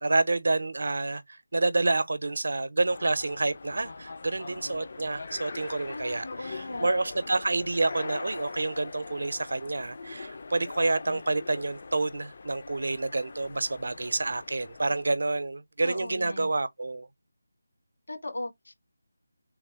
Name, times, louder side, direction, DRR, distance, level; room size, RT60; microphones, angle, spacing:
voice 1, 0.0-17.1, right 2 dB, 65° right, 0.6 m, -28 dB
sound 1, 2.9-15.1, left 3 dB, 50° left, 0.4 m, -42 dB
voice 2, 5.9-6.9 15.8-16.5 18.1-18.7, left 2 dB, 70° left, 1.4 m, -38 dB
3.5 x 2.7 x 3.5 m
figure-of-eight pair, 160°, 0 cm